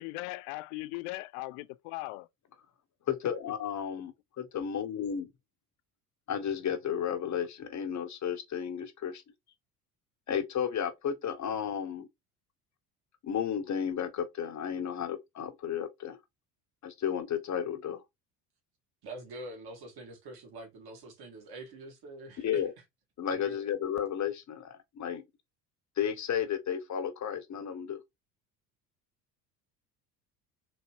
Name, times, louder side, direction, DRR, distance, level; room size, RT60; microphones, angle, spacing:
voice 1, 0.0-2.3, left 20 dB, 60° left, 0.5 m, -39 dB
voice 2, 3.1-5.3 6.3-9.2 10.3-12.1 13.2-16.2 16.8-18.0 22.4-22.7 23.2-25.2 26.0-28.0, left 8 dB, 35° left, 0.8 m, -33 dB
voice 3, 19.0-22.6 23.3-23.7, right 1 dB, 50° right, 1.9 m, -45 dB
4.0 x 3.1 x 2.9 m
hypercardioid pair, 60°, 47 cm